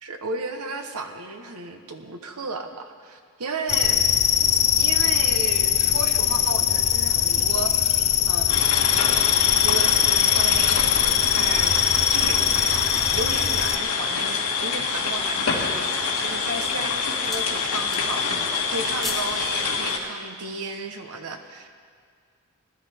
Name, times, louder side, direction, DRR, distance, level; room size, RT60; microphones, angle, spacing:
voice 1, 0.0-4.1 4.8-8.6 9.6-11.7 12.1-12.4 13.1-18.2 18.7-21.7, right 3 dB, 90° right, 6 dB, 1.1 m, -34 dB
sound 1, 3.7-13.8, left 9 dB, 30° left, 0.4 m, -21 dB
sound 2, 8.5-20.0, left 5 dB, 85° left, 1.9 m, -26 dB
sound 3, 15.0-15.4 16.1-16.4 16.8-17.5 17.8-18.3 18.6-19.4 19.7-19.9, left 2 dB, ahead, 1.4 m, -38 dB
20.0 x 12.5 x 3.5 m, 2.1 s
head